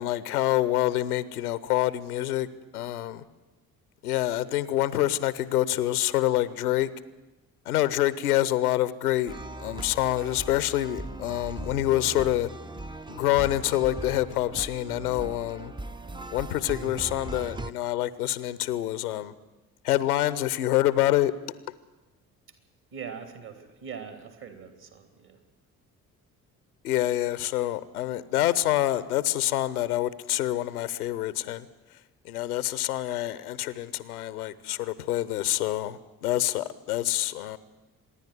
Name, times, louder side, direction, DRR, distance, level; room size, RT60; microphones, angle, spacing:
voice 1, 0.0-2.5 2.7-3.2 4.0-6.9 7.7-12.5 13.1-15.7 16.3-19.3 19.8-21.3 26.8-31.7 32.2-37.6, left 14 dB, 80° left, 18 dB, 0.8 m, -26 dB
sound 1, 9.3-17.7, right 2 dB, 10° right, 0.6 m, -39 dB
voice 2, 22.9-25.4, right 6 dB, 55° right, 8 dB, 3.4 m, -41 dB
25.5 x 10.5 x 9.6 m, 1.1 s
figure-of-eight pair, 45°, 45 cm